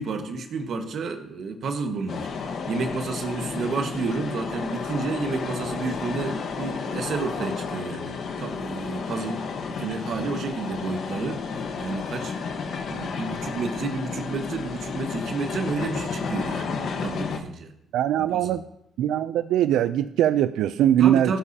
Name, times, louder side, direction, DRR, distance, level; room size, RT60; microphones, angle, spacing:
voice 1, 0.0-8.1 8.4-11.4 11.8-12.3 12.9-16.7 17.0-17.7 18.3-18.6 21.0-21.4, right 4 dB, 65° right, 5 dB, 1.5 m, -30 dB
sound 1, 2.1-17.4, left 5 dB, 65° left, 1.3 m, -32 dB
voice 2, 17.9-18.6 19.0-21.4, right 11 dB, 85° right, 12 dB, 0.4 m, -21 dB
16.0 x 9.9 x 2.8 m, 0.76 s
cardioid pair, 90°, 0 cm